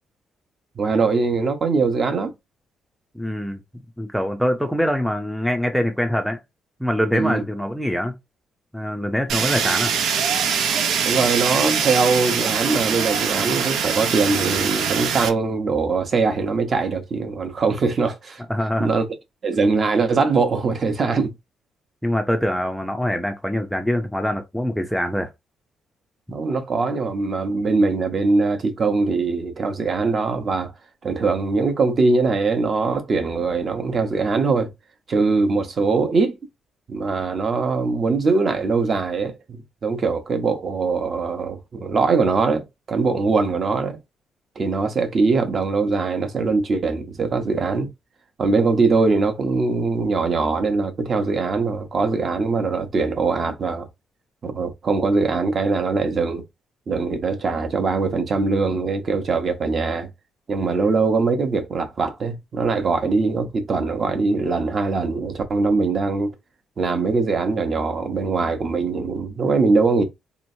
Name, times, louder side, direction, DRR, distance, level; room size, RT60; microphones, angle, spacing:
voice 1, 0.8-2.3 7.1-7.4 11.0-18.4 18.8-19.1 19.4-21.3 26.3-30.7 31.0-34.7 35.1-36.4 36.9-44.0 44.6-47.9 48.4-53.9 54.4-56.4 56.9-60.1 60.5-66.3 66.8-70.0, right 4 dB, 35° right, 0.9 m, -22 dB
voice 2, 3.1-3.6 4.0-6.4 6.8-8.1 8.7-9.9 18.5-18.9 22.0-25.3, equal, ahead, 0.5 m, -24 dB
Fire, 9.3-15.3, right 7 dB, 75° right, 0.8 m, -23 dB
4.1 x 3.0 x 2.7 m
cardioid pair, 155°, 0 cm